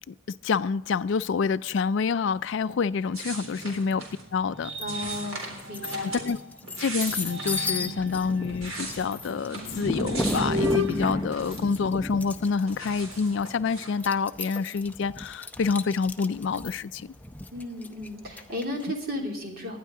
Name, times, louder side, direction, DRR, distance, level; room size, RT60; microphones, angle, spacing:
voice 1, 0.4-4.0 4.3-4.7 5.9-6.4 6.8-17.1, left 5 dB, 60° left, 0.4 m, -27 dB
sound 1, 3.1-4.3 4.9-6.3 6.6-7.8 8.3-11.9 12.2-13.9, right 2 dB, 85° right, 4.0 m, -39 dB
sound 2, 3.4-6.6 7.1-12.3, left 1 dB, 65° right, 1.1 m, -35 dB
sound 3, 4.8-5.2 5.6-18.8, left 2 dB, 10° left, 0.6 m, -34 dB
voice 2, 4.8-6.2 17.5-19.8, left 1 dB, 45° right, 2.8 m, -34 dB
19.0 x 12.0 x 3.7 m
head